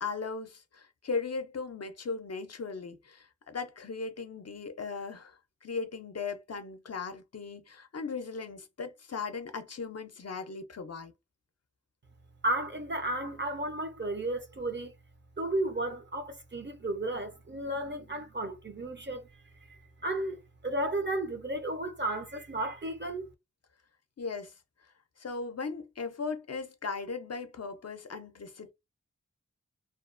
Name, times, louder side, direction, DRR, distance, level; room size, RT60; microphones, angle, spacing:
voice 1, 0.0-11.1 24.2-24.5 25.2-28.7, left 4 dB, 55° left, 0.5 m, -38 dB
voice 2, 12.4-14.9 15.4-23.3, right 1 dB, 35° right, 0.6 m, -33 dB
2.4 x 2.2 x 2.5 m
wide cardioid pair, 50°, 30 cm